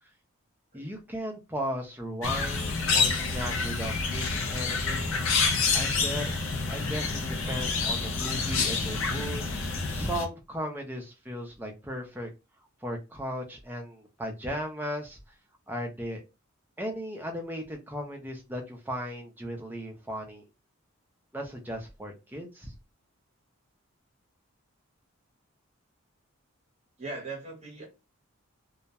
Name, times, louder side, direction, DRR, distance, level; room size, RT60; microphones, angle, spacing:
voice 1, 0.7-5.2 5.7-6.3 6.7-7.2 7.5-12.3 12.8-15.2 15.7-16.2 16.8-20.4 21.3-22.7, equal, 10° right, 0.4 m, -36 dB
sound 1, 2.2-10.3, left 4 dB, 65° left, 0.5 m, -28 dB
voice 2, 27.0-27.9, right 3 dB, 30° right, 0.8 m, -39 dB
2.2 x 2.0 x 2.7 m
head